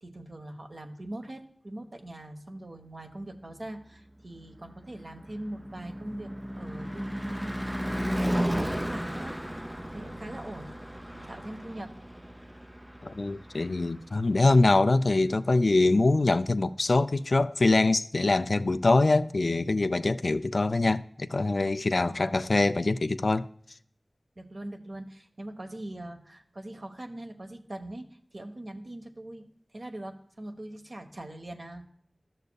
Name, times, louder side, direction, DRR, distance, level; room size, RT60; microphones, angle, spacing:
voice 1, 0.0-9.4 9.8-11.9 22.0-22.9 24.4-29.4 29.7-31.8, right 1 dB, 60° right, 1.0 m, -42 dB
Car passing by / Truck / Engine, 4.2-14.5, equal, 10° right, 0.4 m, -35 dB
voice 2, 13.0-23.5, left 2 dB, 70° left, 0.3 m, -24 dB
13.0 x 6.6 x 2.3 m
wide cardioid pair, 60°, 0 cm